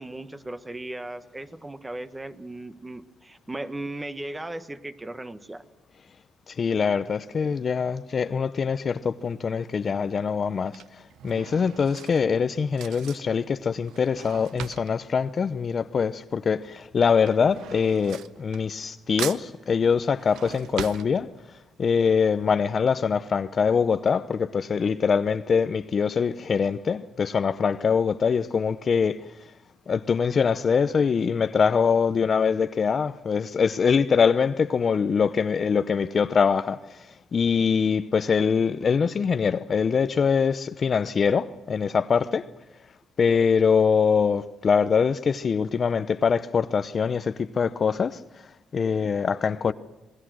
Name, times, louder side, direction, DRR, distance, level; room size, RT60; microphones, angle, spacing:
voice 1, 0.0-5.6, right 1 dB, 15° right, 1.4 m, -37 dB
voice 2, 6.6-10.8 11.2-21.3 21.8-29.2 29.9-37.0 37.3-42.5 43.2-48.2 48.7-49.7, left 6 dB, 45° left, 0.8 m, -23 dB
Drawer open or close / Cutlery silverware, 9.2-9.6 10.4-16.3 16.6-18.9 19.2-21.7 22.1-22.2 22.4-22.5, right 10 dB, 85° right, 0.7 m, -40 dB
26.5 x 20.5 x 6.3 m
cardioid pair, 90°, 0 cm